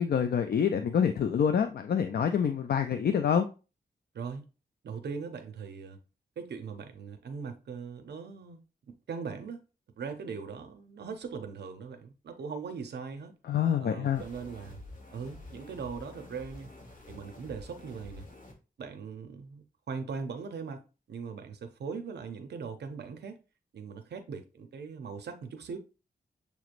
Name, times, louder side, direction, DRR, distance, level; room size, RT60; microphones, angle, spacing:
voice 1, 0.0-3.5 13.5-14.2, left 7 dB, 65° left, 0.4 m, -26 dB
voice 2, 4.1-4.5 4.8-6.0 6.4-9.6 10.0-13.4 13.8-14.8 15.1-16.7 17.1-18.2 18.8-20.8 21.1-23.4 23.7-25.8, right 5 dB, 80° right, 0.6 m, -40 dB
sound 1, 14.1-18.5, left 2 dB, 50° left, 1.4 m, -48 dB
6.9 x 3.0 x 2.5 m
wide cardioid pair, 140°, 17 cm